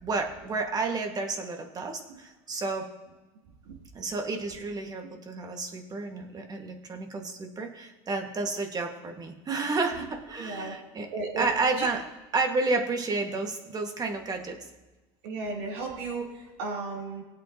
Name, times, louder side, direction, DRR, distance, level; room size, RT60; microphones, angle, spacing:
voice 1, 0.0-2.9 3.9-11.1 11.4-12.0 12.3-14.6, right 3 dB, 30° right, 4 dB, 1.9 m, -31 dB
voice 2, 10.3-10.8 11.1-11.5 11.8-11.9 15.2-17.2, right 3 dB, 80° right, -3 dB, 3.7 m, -34 dB
19.0 x 8.5 x 3.0 m, 1.1 s
supercardioid pair, 100°, 13 cm